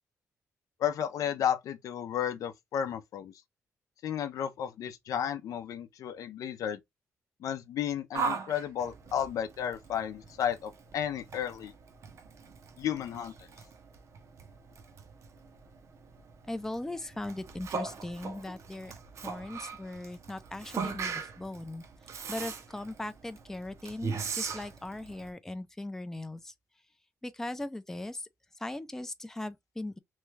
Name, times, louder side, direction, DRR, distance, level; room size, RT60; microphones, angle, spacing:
voice 1, 0.8-3.3 4.0-6.8 7.4-11.7 12.8-13.5, left 9 dB, 75° left, 0.5 m, -33 dB
Yell, 8.1-25.3, right 5 dB, 55° right, 0.7 m, -40 dB
voice 2, 16.5-18.9 19.2-21.8 22.3-26.5 27.2-28.3 28.6-30.0, left 1 dB, 10° left, 0.4 m, -39 dB
3.1 x 2.3 x 3.1 m
cardioid pair, 100°, 6 cm